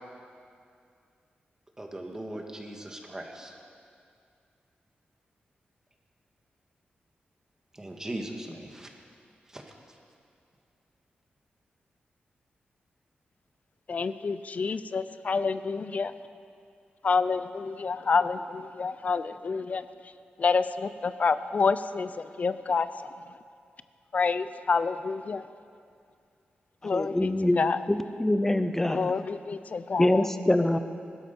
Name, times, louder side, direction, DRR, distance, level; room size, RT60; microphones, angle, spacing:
voice 1, 1.8-3.5 7.7-8.9 9.5-9.6, right 1 dB, 15° right, 1 dB, 1.9 m, -39 dB
voice 2, 13.9-16.1 17.0-19.8 20.4-22.9 24.1-25.4 26.8-27.3 27.6-27.8 28.9-30.3, left 4 dB, 45° left, 13 dB, 0.6 m, -28 dB
voice 3, 26.9-27.6 27.9-29.1 30.0-30.8, left 1 dB, 10° left, 10 dB, 0.8 m, -24 dB
20.5 x 12.5 x 5.4 m, 2.4 s
wide cardioid pair, 110°, 3 cm